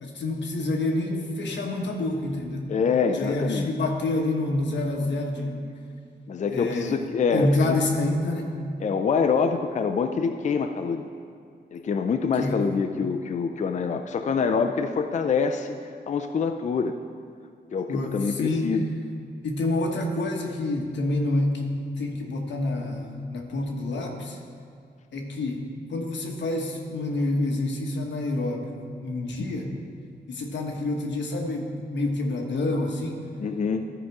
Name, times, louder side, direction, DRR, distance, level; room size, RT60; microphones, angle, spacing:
voice 1, 0.0-2.7 3.1-5.7 6.5-7.0 7.3-8.5 12.4-12.6 17.9-18.8 19.4-24.4 25.1-28.7 29.0-29.7 30.3-33.2, left 2 dB, 90° left, 1 dB, 1.2 m, -27 dB
voice 2, 2.7-3.7 6.3-7.8 8.8-11.1 11.7-15.8 16.1-17.0 17.7-18.8 33.4-33.8, left 5 dB, 40° left, 6 dB, 0.4 m, -25 dB
13.5 x 5.0 x 4.7 m, 2.4 s
wide cardioid pair, 135°, 18 cm